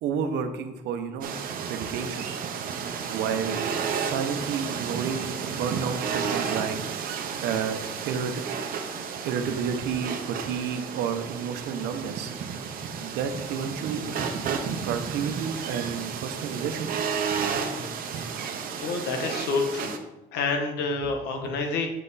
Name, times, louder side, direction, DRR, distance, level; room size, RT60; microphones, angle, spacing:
voice 1, 0.0-1.3 1.7-2.3 3.1-6.8 7.4-8.4 9.2-12.3 13.0-17.6 18.1-18.3, right 7 dB, 80° right, 7 dB, 0.9 m, -31 dB
sound 1, 1.2-20.0, right 6 dB, 55° right, 0.9 m, -32 dB
voice 2, 18.8-20.0 20.3-21.9, left 4 dB, 85° left, 4 dB, 1.3 m, -28 dB
7.5 x 5.6 x 4.1 m, 0.97 s
cardioid pair, 110°, 17 cm